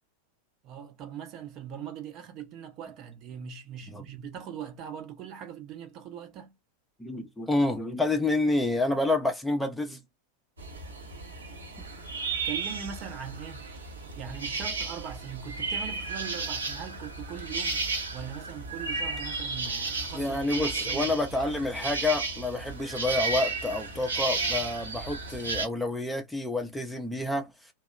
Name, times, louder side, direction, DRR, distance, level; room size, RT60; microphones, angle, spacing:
voice 1, 0.6-6.5 12.4-13.7 14.2-17.8 18.1-21.2, right 8 dB, 35° right, 0.7 m, -41 dB
voice 2, 7.0-10.0 20.1-27.5, left 2 dB, 5° left, 0.6 m, -28 dB
sound 1, 10.6-25.7, right 3 dB, 70° right, 1.0 m, -33 dB
2.8 x 2.0 x 2.2 m
figure-of-eight pair, 90°, 0 cm